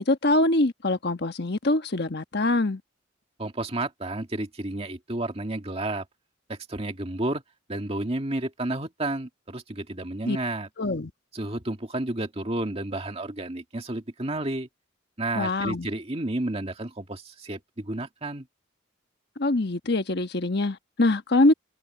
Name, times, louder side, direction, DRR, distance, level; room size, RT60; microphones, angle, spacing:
voice 1, 0.0-2.8 10.2-10.4 10.8-11.1 15.3-15.9 19.4-21.5, left 2 dB, 55° left, 1.3 m, -24 dB
voice 2, 3.4-6.0 6.5-7.4 7.7-10.7 11.3-14.7 15.2-18.5, right 2 dB, 30° right, 2.2 m, -31 dB
head